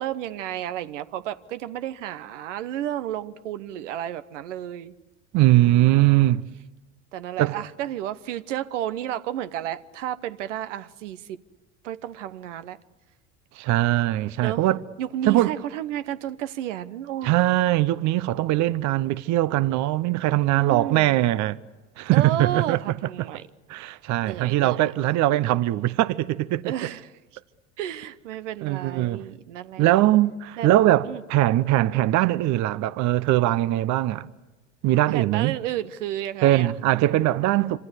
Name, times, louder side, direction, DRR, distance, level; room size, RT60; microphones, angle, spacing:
voice 1, 0.0-4.9 5.6-6.0 7.1-11.4 11.8-12.8 14.4-14.7 15.0-17.5 20.4-21.2 22.1-23.4 24.2-24.9 26.6-27.1 27.8-29.9 30.6-30.7 31.0-31.2 35.1-36.7, right 11 dB, 80° right, 1.0 m, -32 dB
voice 2, 5.3-6.4 7.4-7.6 13.6-14.8 15.2-15.5 17.2-21.6 22.0-22.8 23.2-23.3 23.7-26.7 28.6-29.2 29.8-34.3 34.8-35.6 36.4-37.8, right 15 dB, 50° right, 0.8 m, -21 dB
26.0 x 26.0 x 8.1 m
hypercardioid pair, 80°, 36 cm